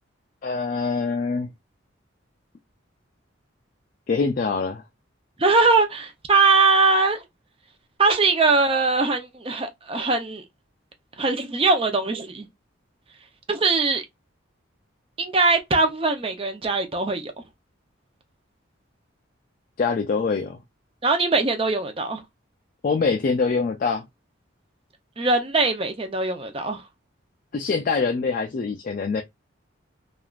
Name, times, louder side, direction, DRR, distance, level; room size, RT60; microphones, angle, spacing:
voice 1, 0.4-1.5 4.1-4.8 19.8-20.6 22.8-24.0 27.5-29.2, left 4 dB, 45° left, 0.3 m, -24 dB
voice 2, 5.4-7.2 8.0-10.4 11.2-12.5 13.5-14.0 15.2-17.3 21.0-22.2 25.2-26.8, right 3 dB, 25° right, 0.5 m, -21 dB
3.2 x 2.4 x 2.3 m
head